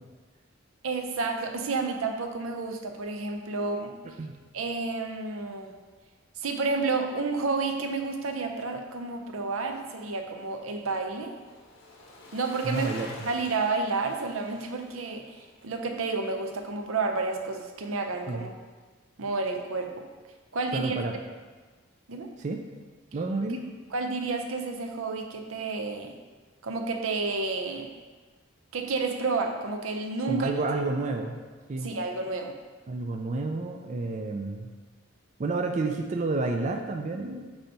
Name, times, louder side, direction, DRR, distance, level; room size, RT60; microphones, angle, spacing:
voice 1, 0.8-3.9 4.5-5.7 6.4-11.4 12.3-12.9 13.2-15.3 15.6-18.5 19.2-20.0 20.5-21.0 22.1-22.3 23.5-23.6 23.9-26.2 26.6-27.9 28.7-30.5 31.8-32.5, right 3 dB, 80° right, 4 dB, 0.6 m, -30 dB
Bicycle, 9.1-17.4 17.7-17.8, left 2 dB, 80° left, 1.2 m, -50 dB
voice 2, 12.6-13.1 18.3-18.5 20.7-21.1 22.4-22.6 23.1-23.6 30.3-31.4 31.7-31.9 32.9-34.7 35.4-37.5, right 3 dB, 35° right, 3 dB, 0.4 m, -30 dB
8.6 x 2.9 x 4.3 m, 1.4 s
head